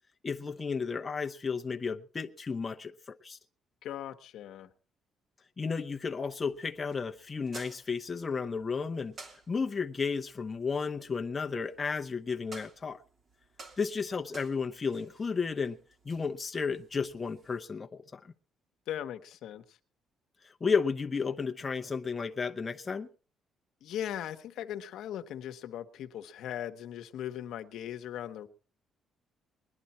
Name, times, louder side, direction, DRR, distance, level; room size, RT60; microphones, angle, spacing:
voice 1, 0.2-3.4 5.6-9.1 9.5-13.0 13.8-15.8 16.0-18.2 20.4-23.1, left 5 dB, 25° left, 0.8 m, -33 dB
voice 2, 3.8-4.7 18.9-19.8 23.8-28.5, left 10 dB, 75° left, 1.1 m, -39 dB
sound 1, 6.3-17.6, right 3 dB, 40° right, 2.8 m, -55 dB
20.5 x 11.0 x 4.3 m
cardioid pair, 130°, 0 cm